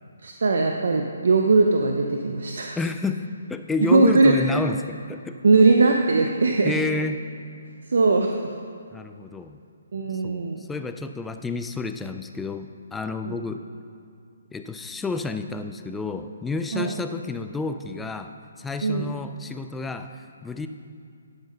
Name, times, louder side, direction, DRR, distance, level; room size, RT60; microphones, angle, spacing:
voice 1, 0.2-2.8 3.9-4.4 5.4-6.7 7.9-8.5 9.9-10.6 13.2-13.4 16.7-16.9 18.8-19.1, right 3 dB, 70° right, 3 dB, 0.6 m, -20 dB
voice 2, 2.8-5.4 6.6-7.2 8.9-9.6 10.1-13.6 14.5-18.3 18.6-20.7, left 3 dB, 5° left, 7 dB, 0.3 m, -30 dB
10.5 x 5.7 x 5.4 m, 2.3 s
hypercardioid pair, 155°, 0 cm